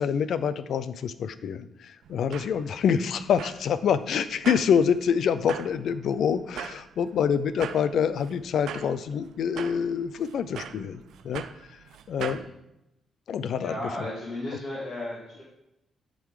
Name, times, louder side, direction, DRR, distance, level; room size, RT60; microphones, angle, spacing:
voice 1, 0.0-11.4 11.7-11.8 12.1-12.4 13.3-13.7, left 7 dB, 55° left, 13 dB, 0.4 m, -26 dB
sound 1, 2.0-12.5, right 8 dB, 70° right, 0.4 m, -42 dB
voice 2, 12.2-12.5 13.6-15.4, left 1 dB, 25° left, -8 dB, 2.1 m, -35 dB
11.0 x 3.7 x 4.8 m, 0.87 s
cardioid pair, 170°, 0 cm